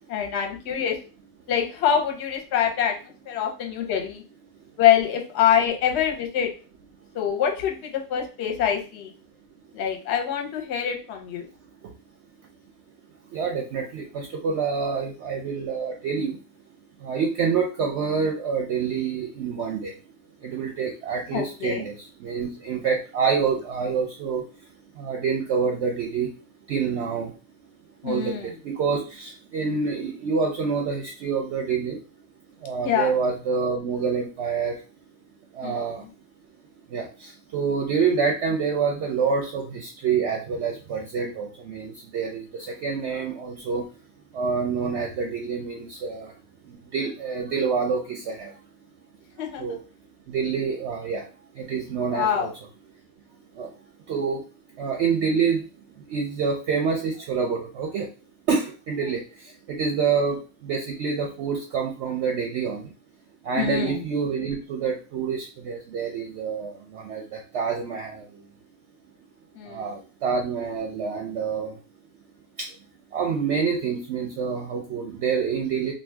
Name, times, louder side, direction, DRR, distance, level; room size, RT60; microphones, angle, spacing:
voice 1, 0.1-1.0 1.5-2.9 3.3-4.2 4.8-6.5 7.2-9.1 9.7-11.4 21.3-21.8 28.0-28.5 32.8-33.1 35.6-35.8 49.4-49.6 52.1-52.5 63.5-64.0 69.6-69.8, left 9 dB, 60° left, 2 dB, 0.8 m, -24 dB
voice 2, 13.3-16.4 17.0-19.9 20.4-24.4 24.9-26.3 26.7-27.3 28.0-32.0 32.6-34.8 35.5-36.1 36.9-43.9 44.3-46.4 46.7-48.6 49.4-49.8 50.3-51.3 51.5-52.5 53.5-53.7 54.1-54.4 54.8-55.7 56.0-58.1 58.5-62.9 63.4-68.4 69.6-71.8 72.6-72.8 73.1-75.9, right 5 dB, 65° right, 1 dB, 0.7 m, -27 dB
2.6 x 2.2 x 3.3 m, 0.34 s
omnidirectional pair, 1.5 m